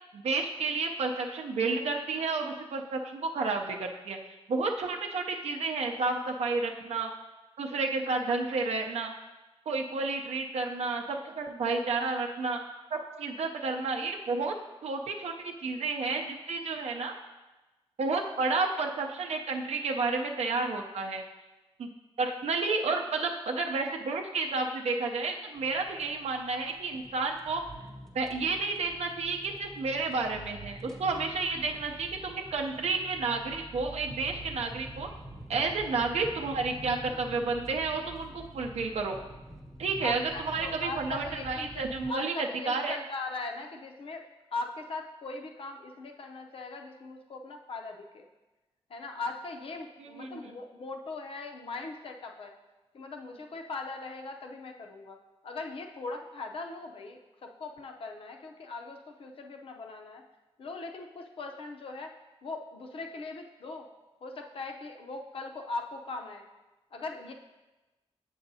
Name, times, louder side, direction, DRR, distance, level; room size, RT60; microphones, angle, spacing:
voice 1, 0.1-4.2 4.5-7.1 7.6-9.1 9.7-12.6 12.9-14.5 14.8-17.1 18.0-21.2 21.8-21.9 22.2-27.6 28.1-35.1 35.5-39.2 39.8-42.3 42.7-43.0 50.0-50.4, right 3 dB, 80° right, 2 dB, 0.5 m, -31 dB
sound 1, 25.6-42.1, right 1 dB, 5° left, 0.5 m, -46 dB
voice 2, 40.0-44.2 44.5-48.3 48.9-52.6 52.9-55.2 55.4-60.2 60.6-62.1 62.4-63.9 64.2-66.5 66.9-67.3, left 3 dB, 55° left, 4 dB, 0.6 m, -40 dB
7.8 x 6.3 x 2.7 m, 1.1 s
wide cardioid pair, 175°, 11 cm